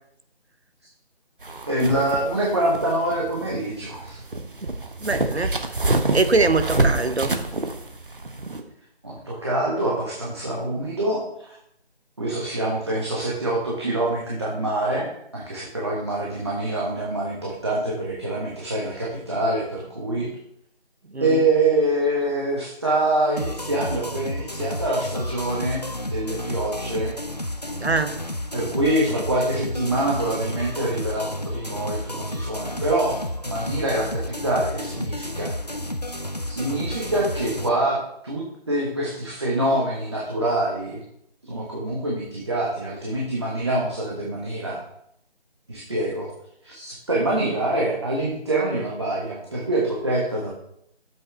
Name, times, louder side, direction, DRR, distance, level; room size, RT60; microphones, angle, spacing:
sound 1, 1.4-8.6, right 2 dB, 55° right, 1.1 m, -27 dB
voice 1, 1.7-4.2 9.0-11.5 12.2-20.3 21.2-27.1 28.5-35.5 36.4-41.0 41.4-44.8 45.7-46.3 46.6-50.5, right 1 dB, 25° right, -4 dB, 1.3 m, -25 dB
voice 2, 5.0-5.5 5.8-7.3 21.1-21.4 27.8-28.2, right 3 dB, 80° right, 10 dB, 1.0 m, -23 dB
sound 2, 23.4-37.7, left 1 dB, 40° left, 0.5 m, -31 dB
11.5 x 7.8 x 3.4 m, 0.73 s
figure-of-eight pair, 165°, 32 cm